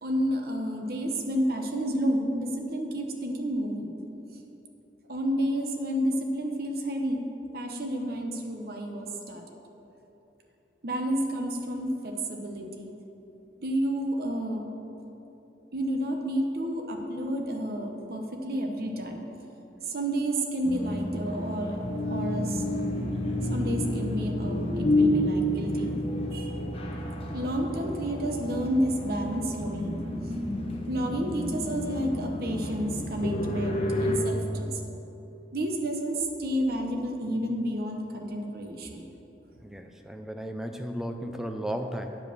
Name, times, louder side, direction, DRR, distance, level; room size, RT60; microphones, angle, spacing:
voice 1, 0.0-3.9 5.1-7.2 7.5-9.4 10.8-12.9 13.6-14.7 15.7-19.2 19.9-22.6 23.5-25.9 26.3-26.6 27.3-30.0 30.9-34.7 35.5-39.0, equal, 60° right, 3 dB, 0.9 m, -30 dB
sound 1, 20.6-34.2, left 1 dB, 35° left, 0.9 m, -30 dB
voice 2, 39.6-42.2, equal, 5° right, 5 dB, 0.5 m, -35 dB
9.4 x 5.1 x 6.7 m, 3.0 s
head